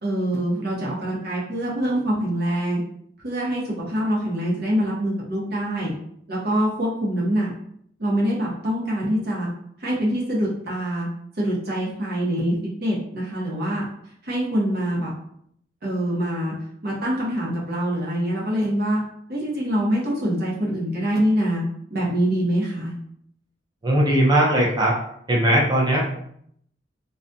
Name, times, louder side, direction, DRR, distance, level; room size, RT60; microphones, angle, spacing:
voice 1, 0.0-2.8 3.2-5.9 6.3-7.5 8.0-9.5 9.8-11.1 11.4-13.8 14.2-15.1 15.8-16.5 16.8-19.0 19.3-21.6 21.9-22.9, equal, 55° right, -5 dB, 0.8 m, -24 dB
voice 2, 23.8-25.0 25.3-26.0, right 1 dB, 20° right, -3 dB, 0.5 m, -19 dB
2.3 x 2.2 x 2.6 m, 0.68 s
head